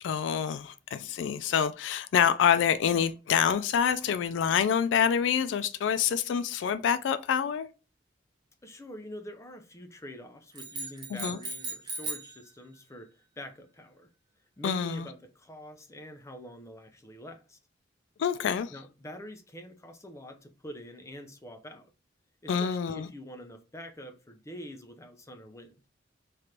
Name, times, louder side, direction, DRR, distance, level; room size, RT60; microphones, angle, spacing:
voice 1, 0.0-7.7 11.1-11.4 14.6-15.1 18.2-18.7 22.5-23.1, left 8 dB, 80° left, 0.3 m, -26 dB
voice 2, 8.6-14.1 14.6-17.6 18.7-21.9 22.4-25.8, equal, 15° left, 0.4 m, -45 dB
sound 1, 10.6-12.4, right 3 dB, 25° right, 0.8 m, -37 dB
3.2 x 2.5 x 4.3 m
head